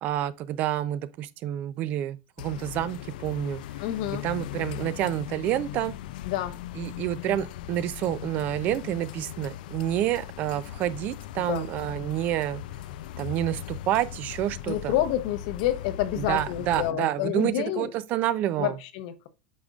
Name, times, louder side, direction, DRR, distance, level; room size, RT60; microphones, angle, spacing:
voice 1, 0.0-3.6 4.2-5.9 6.8-12.6 13.2-14.9 16.2-18.8, right 12 dB, 40° right, 0.5 m, -28 dB
sound 1, 2.4-16.9, left 12 dB, 80° left, 0.4 m, -39 dB
voice 2, 3.8-4.2 6.3-6.6 11.4-11.7 14.7-17.9 18.6-19.3, left 12 dB, 60° left, 0.9 m, -29 dB
8.4 x 5.3 x 2.4 m
supercardioid pair, 160°, 5 cm